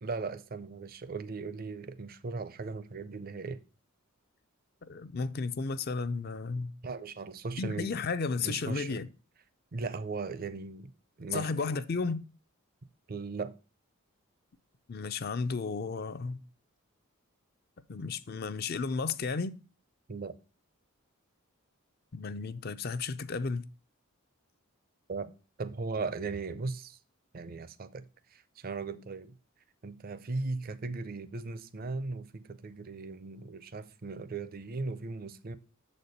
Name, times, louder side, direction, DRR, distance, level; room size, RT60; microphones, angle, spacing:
voice 1, 0.0-3.6 6.8-8.0 8.4-9.0 9.7-10.9 11.2-11.6 13.1-13.5 20.1-20.4 25.1-25.3 25.6-27.0 27.3-29.4 29.8-35.6, right 3 dB, 45° right, 0.5 m, -38 dB
voice 2, 4.9-6.7 7.6-9.1 11.3-12.2 14.9-16.4 17.9-19.6 22.1-23.7, left 4 dB, 45° left, 0.5 m, -33 dB
7.0 x 4.3 x 6.5 m
head